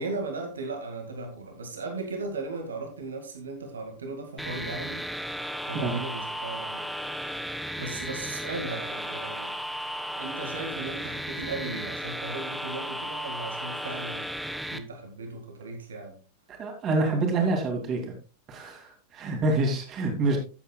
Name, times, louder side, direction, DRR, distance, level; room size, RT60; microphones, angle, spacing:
voice 1, 0.0-5.0 5.7-6.9 7.8-9.5 10.2-14.3 14.7-16.2, right 3 dB, 70° right, 1.9 m, -37 dB
sound 1, 4.4-14.8, equal, ahead, 0.9 m, -35 dB
voice 2, 16.6-18.0 18.5-20.4, right 2 dB, 30° right, 2.7 m, -26 dB
14.5 x 8.1 x 2.3 m
figure-of-eight pair, 90°, 0 cm